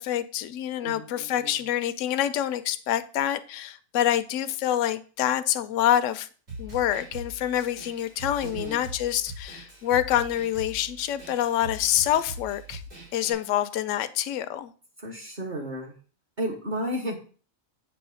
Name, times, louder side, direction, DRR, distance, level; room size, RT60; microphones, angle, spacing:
voice 1, 0.0-6.3 6.6-12.8 13.1-14.7, left 11 dB, 70° left, 11 dB, 0.9 m, -26 dB
voice 2, 0.8-1.6 8.4-8.8 15.0-15.9 16.4-17.2, right 1 dB, 40° right, -1 dB, 1.3 m, -33 dB
Snare drum, 6.5-13.3, right 1 dB, 70° right, 4.3 m, -41 dB
8.0 x 3.0 x 6.2 m, 0.40 s
omnidirectional pair, 1.4 m